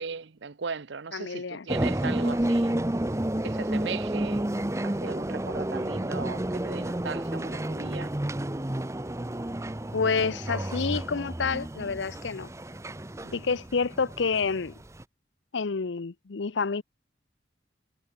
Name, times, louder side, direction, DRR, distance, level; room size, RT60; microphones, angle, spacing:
voice 1, 0.0-2.7 3.4-4.5 4.8-8.1 13.2-13.4, right 5 dB, 70° right, 0.7 m, -38 dB
voice 2, 1.1-1.7 9.9-12.5 13.3-14.8 15.5-16.8, left 5 dB, 75° left, 0.7 m, -28 dB
sound 1, 1.7-15.0, right 1 dB, 15° right, 0.7 m, -31 dB
head